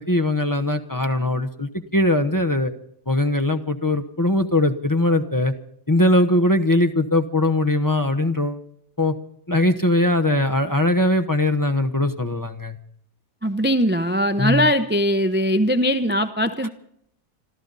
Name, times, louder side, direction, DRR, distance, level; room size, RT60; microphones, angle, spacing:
voice 1, 0.0-2.7 3.1-5.5 5.9-8.6 9.0-9.1 9.5-12.8 14.4-14.7, left 1 dB, 15° left, 6 dB, 0.7 m, -20 dB
voice 2, 13.4-16.7, equal, 15° right, 9 dB, 0.4 m, -20 dB
26.5 x 13.5 x 4.1 m, 0.71 s
omnidirectional pair, 1.7 m